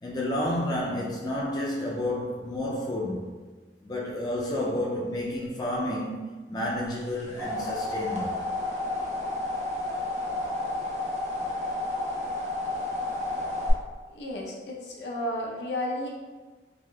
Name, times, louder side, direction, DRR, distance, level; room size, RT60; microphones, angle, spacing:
voice 1, 0.0-3.3 3.8-8.4, left 1 dB, 20° left, 0.3 m, -30 dB
sound 1, 7.0-13.7, left 2 dB, 40° right, 0.6 m, -31 dB
voice 2, 14.1-16.1, left 1 dB, 80° left, 0.5 m, -32 dB
3.4 x 2.4 x 2.2 m
head